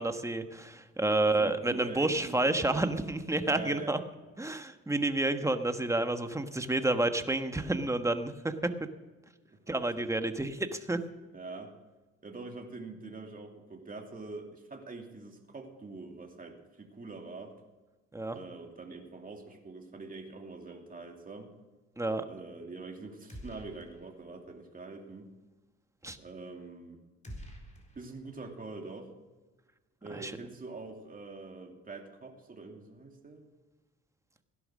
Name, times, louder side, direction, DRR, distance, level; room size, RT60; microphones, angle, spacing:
voice 1, 0.0-4.0 4.4-8.7 9.7-11.0 18.1-18.4 22.0-22.2 26.0-26.2 30.1-30.3, right 2 dB, 10° right, 8 dB, 1.3 m, -30 dB
voice 2, 1.1-2.9 3.4-4.0 9.7-9.8 11.3-11.7 12.2-17.5 18.3-21.5 22.3-25.3 26.2-27.0 27.9-29.1 30.0-33.4, right 3 dB, 30° right, 2 dB, 2.7 m, -44 dB
sound 1, 23.3-24.2 24.5-24.6 27.2-28.5, equal, 25° left, 4.0 m, -47 dB
17.0 x 11.0 x 6.3 m, 1.2 s
cardioid pair, 90°, 30 cm